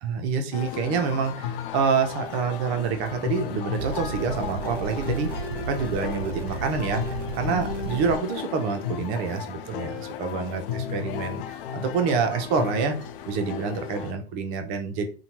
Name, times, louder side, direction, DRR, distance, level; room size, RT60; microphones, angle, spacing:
voice 1, 0.0-13.0 13.2-15.1, right 5 dB, 35° right, 6 dB, 0.5 m, -27 dB
sound 1, 0.5-14.1, left 9 dB, 60° left, 0.4 m, -34 dB
sound 2, 3.8-8.2, right 5 dB, 80° right, 0.5 m, -34 dB
2.7 x 2.2 x 2.9 m, 0.36 s
hypercardioid pair, 115°, 31 cm